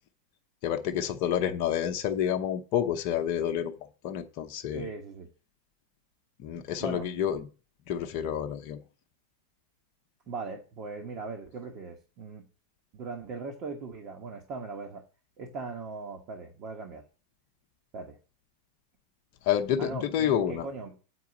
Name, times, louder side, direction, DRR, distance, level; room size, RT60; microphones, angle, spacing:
voice 1, 0.6-3.7 4.0-4.9 6.4-7.5 7.9-8.8 19.5-20.7, left 9 dB, 45° left, 0.8 m, -29 dB
voice 2, 4.7-5.3 6.8-7.1 10.3-12.4 12.9-15.0 15.4-17.0 17.9-18.2 19.8-21.0, right 4 dB, 40° right, 1.2 m, -39 dB
8.0 x 4.7 x 7.1 m
figure-of-eight pair, 90°, 0 cm